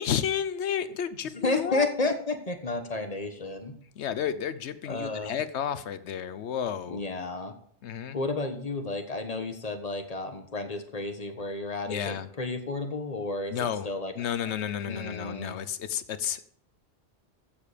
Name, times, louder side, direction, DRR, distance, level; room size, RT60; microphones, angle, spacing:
voice 1, 0.0-1.8 4.0-7.0 7.8-8.2 11.9-12.3 13.5-13.9 14.2-16.6, left 8 dB, 75° left, 14 dB, 1.0 m, -31 dB
voice 2, 1.3-3.8 4.9-5.4 6.9-7.5 8.1-14.1 14.8-15.6, left 2 dB, 35° left, 7 dB, 1.3 m, -32 dB
14.5 x 6.8 x 5.1 m, 0.64 s
omnidirectional pair, 1.2 m